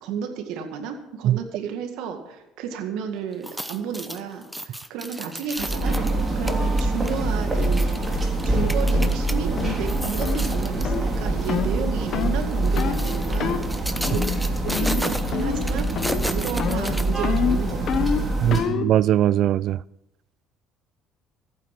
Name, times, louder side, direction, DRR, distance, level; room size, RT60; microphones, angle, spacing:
voice 1, 0.0-6.0 6.4-8.1 8.4-13.6 14.1-14.2 14.6-15.9 16.3-18.1, right 7 dB, 80° right, 2.0 m, -32 dB
sound 1, 3.3-9.4 9.8-10.9 11.4-11.6 12.4-17.5 17.9-18.0, right 1 dB, 5° right, 0.9 m, -34 dB
sound 2, 5.6-18.6, right 2 dB, 20° right, 3.9 m, -25 dB
sound 3, 8.9-9.1 9.6-9.8 10.2-10.4 10.8-11.1 11.5-11.7 12.1-12.4 12.8-13.0 13.4-13.6 14.0-14.4 14.7-15.0 15.3-15.7 16.0-16.3 16.6-18.9, left 8 dB, 50° left, 1.0 m, -27 dB
voice 2, 18.4-19.8, right 11 dB, 60° right, 0.4 m, -20 dB
15.0 x 9.2 x 6.0 m
cardioid pair, 110°, 0 cm